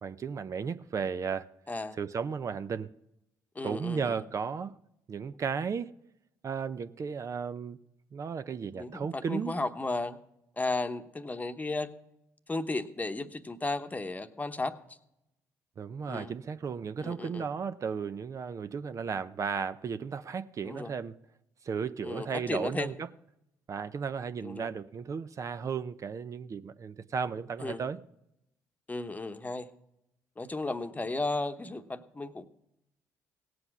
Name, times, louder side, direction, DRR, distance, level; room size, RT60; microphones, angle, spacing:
voice 1, 0.0-1.5 2.0-2.9 3.6-4.7 5.1-5.9 6.4-7.8 8.1-9.5 15.8-21.1 21.6-23.1 23.7-28.0, right 6 dB, 45° right, 0.6 m, -34 dB
voice 2, 1.7-2.0 3.5-4.2 8.8-10.2 10.6-11.9 12.5-14.8 16.1-16.3 17.0-17.5 20.6-20.9 22.0-22.9 24.4-24.7 27.6-27.8 28.9-29.7 30.4-32.5, left 2 dB, 20° left, 1.0 m, -34 dB
17.0 x 7.8 x 6.0 m
supercardioid pair, 60°, 7 cm